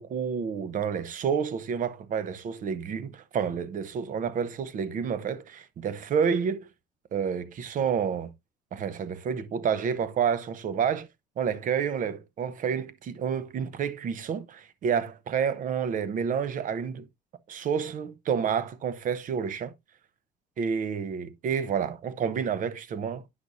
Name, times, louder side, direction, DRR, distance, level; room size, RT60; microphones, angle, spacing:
voice 1, 0.0-6.7 7.1-8.3 8.7-11.1 11.4-17.1 17.5-19.7 20.6-23.2, right 7 dB, 50° right, 0.8 m, -29 dB
9.7 x 6.0 x 2.6 m
cardioid pair, 110°, 17 cm